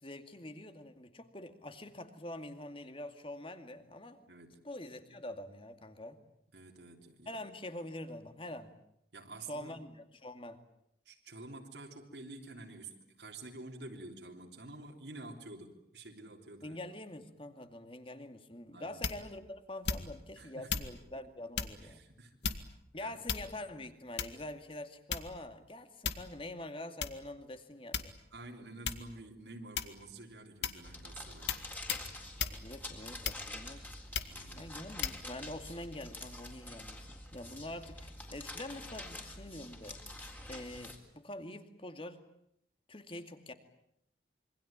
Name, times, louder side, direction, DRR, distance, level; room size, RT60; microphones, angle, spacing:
voice 1, 0.0-4.2 4.6-6.2 7.3-8.7 9.5-10.6 16.6-22.0 22.9-28.1 32.5-34.0 34.6-40.0 40.5-42.2 42.9-43.5, left 1 dB, 30° left, 8 dB, 2.4 m, -45 dB
voice 2, 4.3-4.6 6.5-7.4 9.1-9.8 11.1-16.8 18.7-19.0 20.4-20.9 21.7-22.4 23.0-23.1 28.3-31.6 34.3-34.9, right 2 dB, 80° right, 1 dB, 3.6 m, -49 dB
sound 1, 19.0-19.4 19.8-20.3 20.7-20.9 21.5-21.8 22.4-22.8 23.3-23.7 24.2-24.5 25.1-25.5 26.0-26.4 27.0-27.2 27.9-28.4 28.8-29.1 29.7-30.1 30.6-30.9 31.5-31.6 31.9-32.1 32.4-32.6 33.2-33.6 34.1-34.4 35.0-35.2, left 6 dB, 80° left, 2.0 m, -36 dB
sound 2, 30.8-41.0, left 1 dB, 10° left, 3.8 m, -46 dB
27.0 x 24.0 x 8.9 m, 0.75 s
head